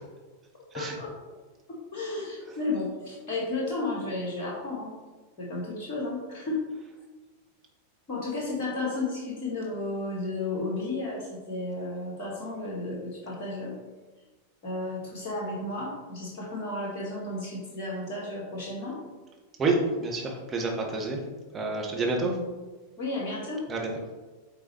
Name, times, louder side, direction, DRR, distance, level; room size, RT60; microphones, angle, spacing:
voice 1, 0.7-1.3 1.7-4.9 5.4-6.7 8.1-13.7 14.6-19.0 23.0-23.6, left 2 dB, 40° left, -3 dB, 1.7 m, -33 dB
voice 2, 19.6-21.2 21.5-22.4 23.7-23.9, right 3 dB, 20° right, 0 dB, 1.3 m, -28 dB
8.7 x 3.9 x 3.1 m, 1.2 s
figure-of-eight pair, 90°, 0 cm